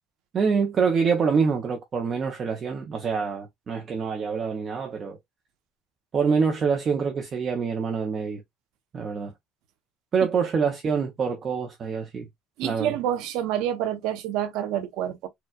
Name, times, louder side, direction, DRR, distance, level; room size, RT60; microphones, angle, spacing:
voice 1, 0.3-5.2 6.1-8.4 8.9-9.3 10.1-12.3 12.6-13.0, right 5 dB, 30° right, 0.6 m, -25 dB
voice 2, 12.6-15.3, right 11 dB, 70° right, 0.9 m, -28 dB
4.3 x 2.3 x 2.3 m
cardioid pair, 150°, 0 cm